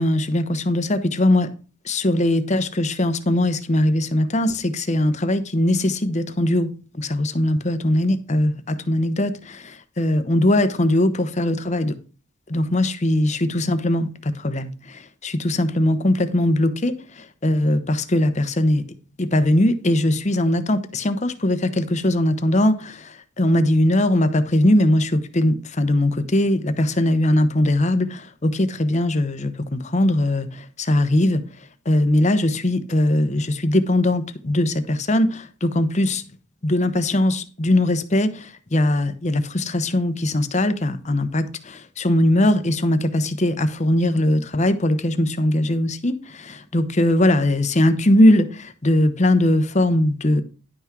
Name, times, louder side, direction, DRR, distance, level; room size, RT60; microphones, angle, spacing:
voice 1, 0.0-1.5 1.8-6.7 7.0-11.9 12.5-18.8 19.2-31.4 31.9-36.2 36.6-50.4, left 1 dB, 35° left, 0.9 m, -20 dB
11.0 x 5.9 x 4.6 m
head